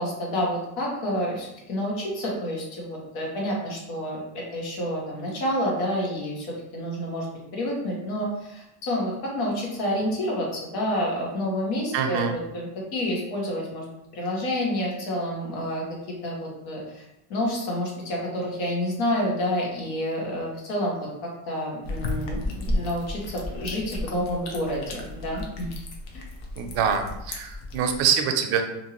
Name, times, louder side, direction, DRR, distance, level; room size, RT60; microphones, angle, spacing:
voice 1, 0.0-7.3 7.5-13.8 14.1-15.8 16.2-25.7, equal, 80° left, -2 dB, 1.3 m, -29 dB
voice 2, 11.9-12.4 26.6-28.6, right 7 dB, 65° right, 6 dB, 0.6 m, -24 dB
sound 1, 21.8-28.1, left 1 dB, 60° left, 0.7 m, -33 dB
2.6 x 2.6 x 2.9 m, 0.89 s
cardioid pair, 150°, 41 cm